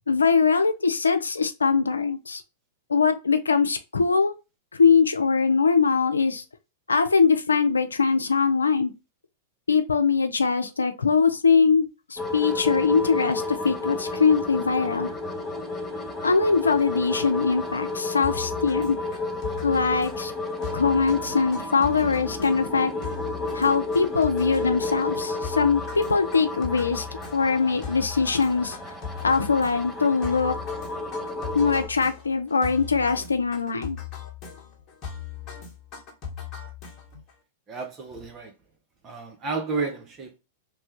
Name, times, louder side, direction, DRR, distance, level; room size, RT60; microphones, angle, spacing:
voice 1, 0.1-2.4 2.9-4.3 4.7-6.4 6.9-8.9 9.7-15.1 16.2-19.0 19.6-20.3 20.7-22.9 23.5-27.1 27.3-28.8 29.2-30.6 31.5-34.0, left 5 dB, 85° left, 0.5 m, -22 dB
sound 1, 12.2-31.9, left 2 dB, ahead, 0.8 m, -32 dB
sound 2, 18.2-37.3, left 8 dB, 35° left, 1.1 m, -39 dB
voice 2, 37.7-38.5 39.0-40.4, right 4 dB, 30° right, 0.8 m, -31 dB
3.2 x 2.2 x 2.8 m
hypercardioid pair, 100°, 0 cm